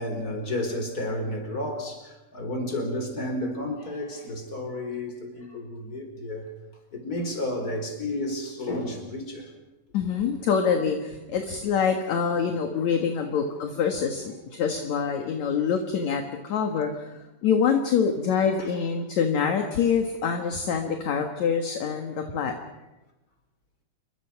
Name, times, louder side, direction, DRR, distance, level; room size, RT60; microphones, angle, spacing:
voice 1, 0.0-6.5 6.9-9.5 13.2-13.4 14.4-14.5 18.6-18.7 22.1-22.3, left 1 dB, 25° left, 4 dB, 4.9 m, -32 dB
voice 2, 9.9-17.1 17.4-22.5, left 6 dB, 60° left, 5 dB, 2.6 m, -25 dB
29.0 x 22.5 x 6.0 m, 1.0 s
omnidirectional pair, 4.1 m